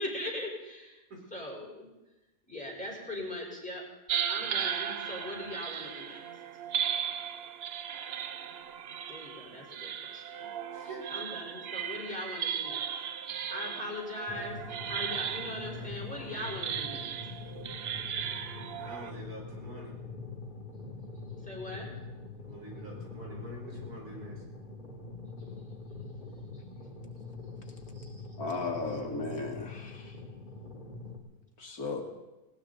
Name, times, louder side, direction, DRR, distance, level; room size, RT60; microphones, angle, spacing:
voice 1, 0.0-1.0 1.3-1.9 2.5-3.8 4.3-6.2 9.1-10.5 10.8-12.9 13.3-17.1 21.4-21.9 26.5-26.6, left 1 dB, 5° left, -2 dB, 4.1 m, -40 dB
sound 1, 4.1-19.1, right 8 dB, 55° right, 0.7 m, -36 dB
sound 2, 14.3-31.2, left 3 dB, 30° left, 2.4 m, -44 dB
voice 2, 18.7-20.0 22.4-24.3 27.9-28.2, right 1 dB, 75° right, -2 dB, 4.8 m, -46 dB
voice 3, 28.4-30.2 31.6-32.0, left 3 dB, 65° left, 2 dB, 2.3 m, -35 dB
19.5 x 18.5 x 3.9 m, 1.0 s
omnidirectional pair, 1.7 m